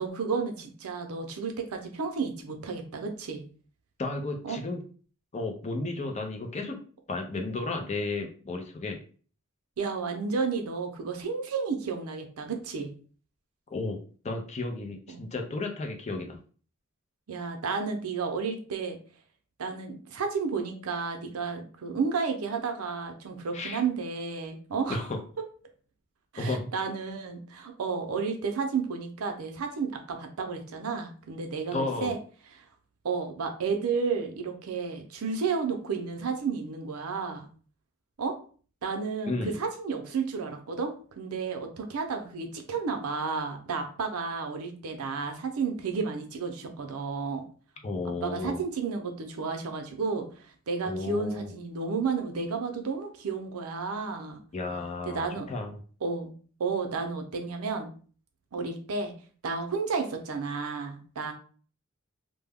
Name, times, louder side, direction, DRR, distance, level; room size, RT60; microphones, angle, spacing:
voice 1, 0.0-3.4 4.4-4.6 9.8-12.9 15.1-15.2 17.3-19.0 19.6-25.0 26.3-32.2 33.0-37.5 38.2-38.4 38.8-47.5 48.2-50.3 50.7-54.4 55.1-55.5 56.0-56.3 56.6-57.9 58.5-59.1 59.4-61.3, right 5 dB, 85° right, 4 dB, 0.5 m, -32 dB
voice 2, 4.0-4.8 5.3-6.8 7.1-9.0 13.7-14.0 14.2-16.4 23.5-23.8 24.9-25.2 26.4-26.7 31.7-32.2 39.3-39.6 47.8-48.6 50.8-51.5 54.5-55.7, left 3 dB, 30° left, 3 dB, 0.4 m, -33 dB
2.2 x 2.1 x 3.4 m, 0.41 s
head